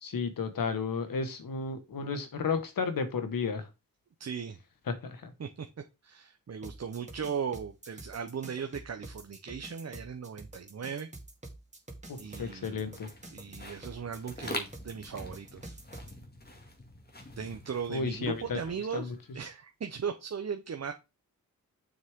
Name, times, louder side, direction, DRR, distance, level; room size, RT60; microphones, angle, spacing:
voice 1, 0.0-3.7 4.9-5.3 12.1-13.1 17.9-18.6 18.9-19.1, left 5 dB, 85° left, 9 dB, 1.6 m, -33 dB
voice 2, 4.2-4.6 5.4-5.7 6.0-11.1 12.2-12.8 13.3-15.7 17.3-20.9, right 6 dB, 50° right, 6 dB, 0.9 m, -37 dB
sound 1, 6.6-16.1, right 2 dB, 20° right, 2.2 m, -47 dB
sound 2, 12.1-19.3, left 1 dB, 30° left, 2.3 m, -45 dB
7.2 x 6.4 x 3.7 m, 0.25 s
wide cardioid pair, 95°, 33 cm